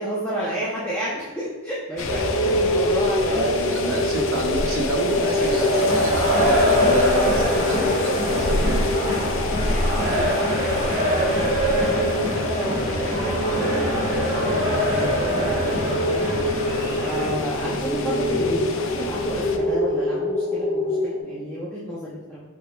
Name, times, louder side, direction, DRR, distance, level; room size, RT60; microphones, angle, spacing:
voice 1, 0.0-4.0 5.4-5.7 9.6-12.1 12.3-22.4, right 1 dB, 10° left, -9 dB, 0.6 m, -31 dB
sound 1, 2.0-19.6, left 3 dB, 60° left, 0.4 m, -30 dB
sound 2, 2.1-21.2, left 1 dB, 45° left, 1.1 m, -25 dB
voice 2, 3.3-8.9, right 2 dB, 65° right, 1 dB, 0.7 m, -28 dB
sound 3, 5.7-17.3, equal, 35° right, 1.2 m, -25 dB
5.0 x 4.6 x 2.3 m, 1.3 s
head